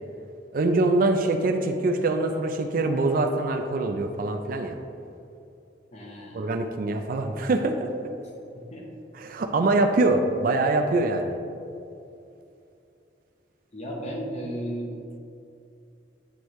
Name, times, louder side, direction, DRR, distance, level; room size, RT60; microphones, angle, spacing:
voice 1, 0.5-4.8 6.3-7.9 9.2-11.4, right 2 dB, 55° right, 5 dB, 0.4 m, -24 dB
voice 2, 5.9-6.5 8.2-8.8 13.7-15.0, equal, 40° left, -1 dB, 1.0 m, -35 dB
8.1 x 4.6 x 3.1 m, 2.6 s
head